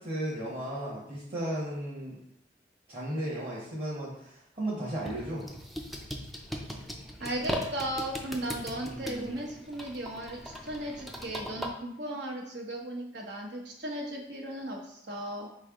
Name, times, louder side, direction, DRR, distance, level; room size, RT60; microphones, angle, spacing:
voice 1, 0.0-2.2 2.9-5.5 8.9-9.3, right 1 dB, 40° right, -7 dB, 1.2 m, -35 dB
sound 1, 5.0-11.7, equal, ahead, 0.4 m, -39 dB
voice 2, 7.2-15.5, right 1 dB, 75° right, 0 dB, 0.9 m, -36 dB
4.4 x 3.3 x 3.6 m, 0.74 s
head